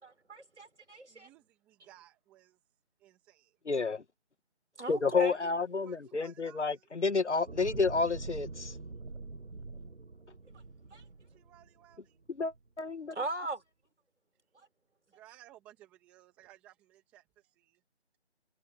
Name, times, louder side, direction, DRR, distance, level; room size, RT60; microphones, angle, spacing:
voice 1, 0.0-1.3 4.8-5.5 10.5-10.6 10.9-11.0 13.1-13.6 14.5-14.7, right 2 dB, 90° right, 3.5 m, -39 dB
voice 2, 1.1-2.6 3.0-3.6 5.8-6.9 10.9-12.2 15.1-17.8, right 14 dB, 5° right, 1.7 m, -59 dB
voice 3, 3.7-4.0 4.9-5.9 6.1-8.7 12.4-13.2, left 4 dB, 90° left, 1.6 m, -30 dB
sound 1, 7.4-12.0 12.4-12.6, right 3 dB, 70° right, 3.8 m, -44 dB
figure-of-eight pair, 170°, 34 cm